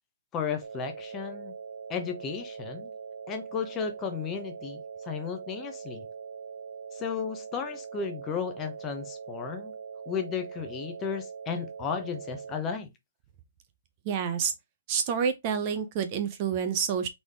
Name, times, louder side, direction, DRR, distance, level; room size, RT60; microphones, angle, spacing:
voice 1, 0.3-1.5 1.9-2.9 3.3-6.1 6.9-9.7 10.1-12.9, left 6 dB, 15° left, 0.7 m, -34 dB
sound 1, 0.6-12.6, right 6 dB, 85° right, 0.4 m, -42 dB
voice 2, 14.0-14.5 14.9-17.1, right 7 dB, 25° right, 0.5 m, -28 dB
4.1 x 3.4 x 3.4 m
hypercardioid pair, 175°, 0 cm